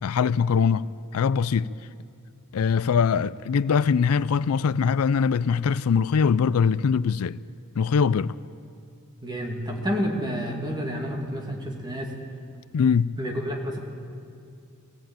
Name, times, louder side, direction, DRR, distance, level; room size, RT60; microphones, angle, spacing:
voice 1, 0.0-0.8 1.1-1.7 2.5-7.4 7.8-8.4 12.7-13.1, left 6 dB, 75° left, 0.4 m, -22 dB
voice 2, 9.2-12.1 13.2-13.8, equal, 20° right, 2.5 m, -29 dB
19.5 x 15.5 x 8.9 m
head